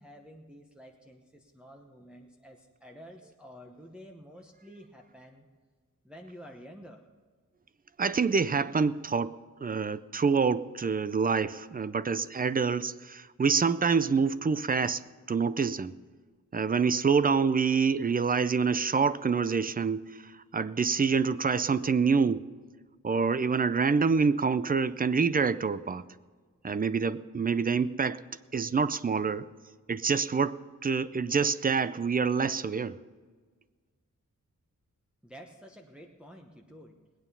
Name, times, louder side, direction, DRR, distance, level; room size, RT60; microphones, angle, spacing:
voice 1, 0.0-5.5 6.0-7.0 35.2-37.0, equal, 5° right, 1.0 m, -50 dB
voice 2, 8.0-9.3 9.6-15.0 15.3-15.9 16.5-22.5 23.0-26.0 26.6-28.2 28.5-29.5 29.9-33.0, right 5 dB, 30° right, 0.4 m, -26 dB
20.5 x 9.0 x 5.5 m
wide cardioid pair, 110°, 31 cm